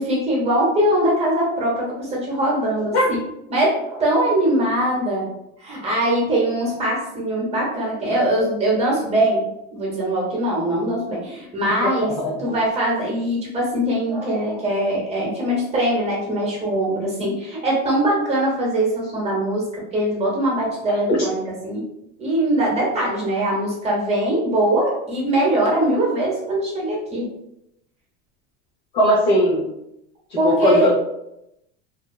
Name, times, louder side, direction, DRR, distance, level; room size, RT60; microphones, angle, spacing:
voice 1, 0.0-3.2 3.5-5.3 5.6-9.4 9.7-12.1 12.4-21.4 21.6-21.8 22.2-27.3 30.4-30.9, right 1 dB, 20° right, -4 dB, 0.7 m, -21 dB
voice 2, 12.0-12.5 20.9-21.0 28.9-29.6 30.4-30.9, equal, 80° left, -7 dB, 1.0 m, -19 dB
2.7 x 2.3 x 2.3 m, 0.84 s
supercardioid pair, 145°, 34 cm